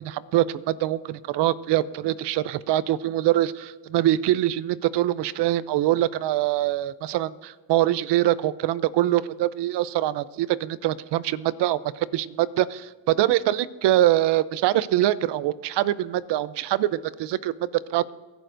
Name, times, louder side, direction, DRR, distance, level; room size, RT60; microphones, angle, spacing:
voice 1, 0.0-18.1, right 14 dB, 70° right, 17 dB, 0.7 m, -24 dB
26.5 x 11.5 x 2.6 m, 1.3 s
cardioid pair, 90°, 43 cm